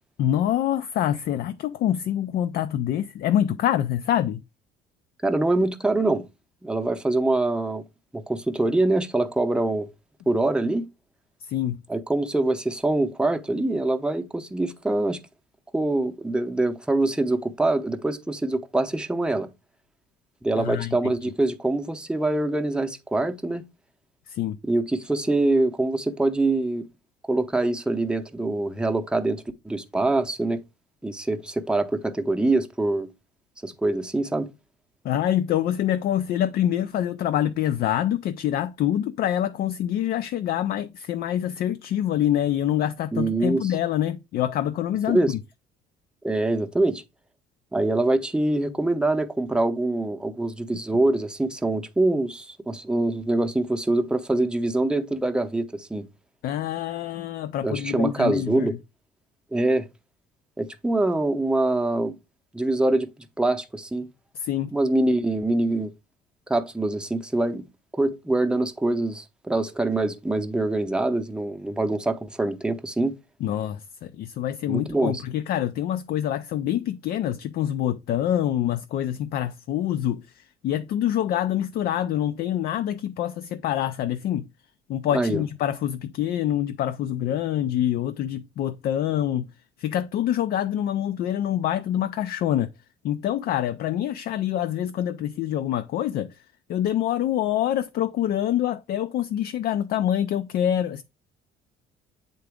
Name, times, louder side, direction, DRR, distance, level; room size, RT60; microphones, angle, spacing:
voice 1, 0.2-4.4 11.4-11.8 20.6-21.1 24.3-24.6 35.0-45.4 56.4-58.8 64.3-64.7 73.4-84.5 84.9-89.5 89.8-92.7 93.0-96.4 96.7-101.0, left 11 dB, 65° left, 0.5 m, -26 dB
voice 2, 5.2-6.3 6.6-7.8 8.1-9.9 10.3-10.9 11.9-15.2 15.7-19.5 20.4-23.6 24.6-26.9 27.3-30.6 31.0-33.1 33.6-34.5 43.1-43.7 45.1-45.3 46.2-47.0 47.7-56.1 57.6-58.7 59.5-59.9 60.6-62.2 62.5-63.1 63.4-64.1 64.7-65.9 66.5-67.7 67.9-73.1 74.7-75.2 85.1-85.4, right 2 dB, 5° right, 0.7 m, -24 dB
8.0 x 3.9 x 3.4 m
cardioid pair, 110°, 17 cm